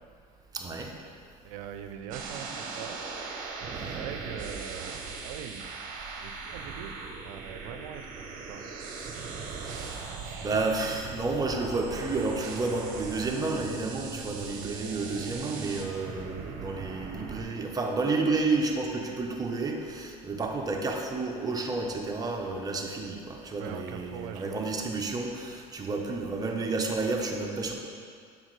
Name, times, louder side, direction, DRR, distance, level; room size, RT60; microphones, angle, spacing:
voice 1, 0.5-0.9 3.7-4.0 9.5-10.1 10.4-27.8, right 3 dB, 20° right, 0 dB, 0.9 m, -31 dB
voice 2, 1.4-3.0 3.9-5.7 5.9-6.9 7.2-8.7 23.6-24.7, right 9 dB, 80° right, 7 dB, 0.5 m, -42 dB
sound 1, 2.1-17.4, right 4 dB, 55° right, 0.9 m, -39 dB
7.2 x 5.4 x 3.3 m, 2.2 s
supercardioid pair, 95°, 17 cm